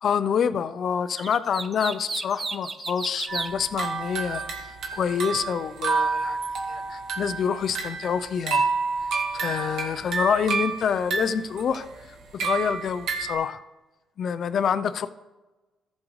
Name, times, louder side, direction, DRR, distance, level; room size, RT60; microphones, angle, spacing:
voice 1, 0.0-6.4 6.7-8.7 9.3-13.6 14.2-15.1, left 7 dB, 60° left, 13 dB, 0.5 m, -27 dB
sound 1, 1.2-3.5, right 4 dB, 35° right, 0.6 m, -33 dB
sound 2, 3.3-13.4, right 4 dB, 75° right, 1.6 m, -29 dB
14.5 x 6.4 x 3.1 m, 1.2 s
cardioid pair, 90°, 0 cm